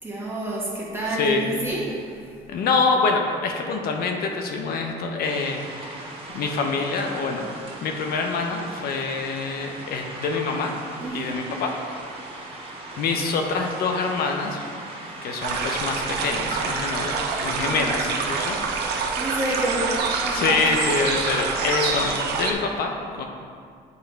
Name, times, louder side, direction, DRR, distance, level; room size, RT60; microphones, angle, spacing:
voice 1, 0.0-2.2 11.0-11.4 17.6-17.9 19.2-19.9 20.2-20.9, right 1 dB, 15° right, -5 dB, 1.5 m, -29 dB
voice 2, 1.1-1.6 2.5-6.1 6.3-7.5 7.8-10.8 11.1-11.7 13.0-14.6 15.2-18.6 20.3-23.3, left 4 dB, 65° left, 3 dB, 0.6 m, -26 dB
sound 1, 5.2-21.7, right 2 dB, 35° right, 1.2 m, -38 dB
sound 2, 15.4-22.5, right 5 dB, 75° right, 0.7 m, -26 dB
8.1 x 3.1 x 4.4 m, 2.2 s
cardioid pair, 110°, 17 cm